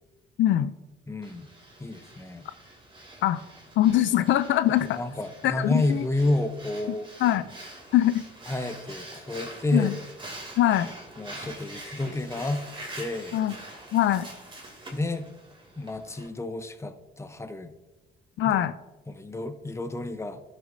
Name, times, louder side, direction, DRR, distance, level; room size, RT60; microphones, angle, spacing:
voice 1, 0.4-0.7 3.2-3.4 3.8-5.0 5.4-6.0 7.2-7.4 7.9-8.2 9.7-9.9 10.6-10.9 13.3-13.5 13.9-14.3 18.4-18.7, left 12 dB, 70° left, 13 dB, 0.4 m, -22 dB
voice 2, 1.1-1.5 1.8-2.5 4.9-7.1 8.5-9.9 11.2-12.7 12.9-13.4 14.9-15.3 15.8-17.7 18.4-18.6 19.1-20.4, left 2 dB, 15° left, 9 dB, 0.7 m, -30 dB
Breathing, 1.2-16.3, right 1 dB, 25° right, 2.6 m, -45 dB
12.0 x 6.5 x 2.7 m, 1.1 s
cardioid pair, 90°, 20 cm